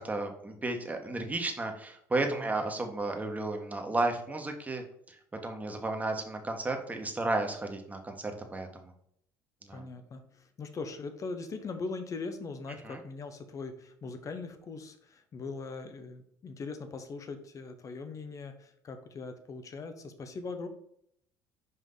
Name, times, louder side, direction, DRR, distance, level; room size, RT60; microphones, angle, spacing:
voice 1, 0.0-5.1 5.4-8.9 9.6-9.9 12.8-13.0, right 2 dB, 20° right, 4 dB, 1.5 m, -33 dB
voice 2, 2.2-2.5 9.7-20.7, left 4 dB, 40° left, 8 dB, 1.1 m, -41 dB
5.8 x 5.0 x 4.0 m, 0.69 s
hypercardioid pair, 75°, 9 cm